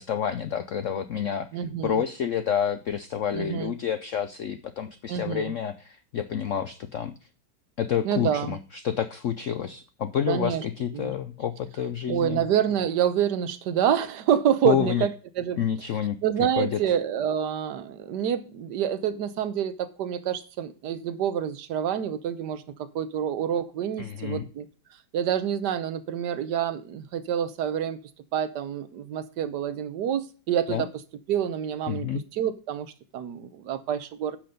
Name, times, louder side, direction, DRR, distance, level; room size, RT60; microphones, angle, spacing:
voice 1, 0.0-7.2 7.8-12.4 14.6-15.1 15.6-16.2 16.6-16.8 24.0-24.5 30.7-30.9 31.9-32.2, left 8 dB, 90° left, 11 dB, 0.6 m, -29 dB
voice 2, 1.5-2.0 3.3-3.7 5.1-5.5 8.0-8.5 10.3-10.6 10.9-11.1 12.1-15.1 15.4-15.6 16.2-24.7 25.1-28.0 28.3-30.9 31.3-32.1 32.3-34.4, right 9 dB, 65° right, 12 dB, 1.4 m, -27 dB
9.9 x 6.1 x 5.2 m, 0.36 s
omnidirectional pair, 2.1 m